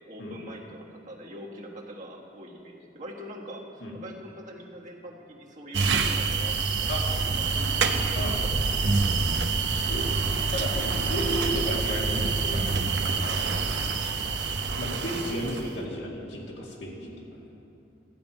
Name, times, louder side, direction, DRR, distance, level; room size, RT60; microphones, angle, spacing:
voice 1, 0.1-6.7 7.1-9.4, equal, 45° right, -1 dB, 1.5 m, -43 dB
sound 1, 5.7-15.7, right 4 dB, 90° right, 0.8 m, -26 dB
Mechanisms, 7.2-14.5, left 1 dB, 70° left, 2.7 m, -45 dB
voice 2, 9.8-12.7 13.2-13.6 14.8-17.5, equal, 85° left, -3 dB, 2.3 m, -34 dB
13.5 x 5.2 x 8.9 m, 2.7 s
head